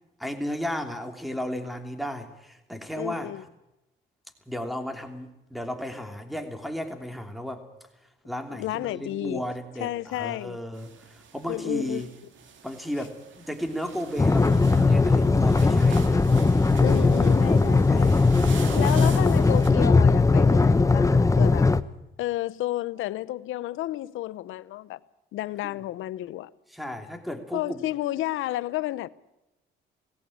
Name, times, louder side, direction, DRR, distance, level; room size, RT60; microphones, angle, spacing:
voice 1, 0.2-3.3 4.5-7.7 8.2-12.1 12.6-16.2 17.0-17.1 17.9-18.4 18.8-19.2 25.6-25.7 26.7-27.8, equal, ahead, 3.0 m, -34 dB
voice 2, 2.9-3.4 8.5-9.4 9.8-10.6 11.5-12.0 16.8-18.2 18.7-21.7 22.2-25.0 25.3-26.5 27.5-29.1, left 15 dB, 85° left, 0.8 m, -31 dB
sound 1, 10.7-19.7, right 6 dB, 70° right, 2.6 m, -44 dB
sound 2, 14.2-21.8, left 3 dB, 15° left, 0.9 m, -19 dB
18.5 x 16.5 x 8.6 m
cardioid pair, 90°, 20 cm